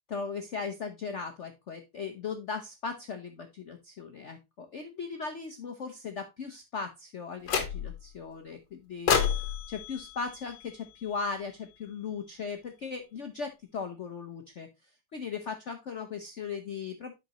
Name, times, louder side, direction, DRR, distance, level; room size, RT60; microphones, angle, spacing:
voice 1, 0.1-14.7 15.1-17.1, left 5 dB, 90° left, 6 dB, 0.6 m, -38 dB
sound 1, 7.5-8.1 9.1-11.3, left 7 dB, 60° left, 1.6 m, -30 dB
10.5 x 5.2 x 2.9 m, 0.23 s
omnidirectional pair, 2.3 m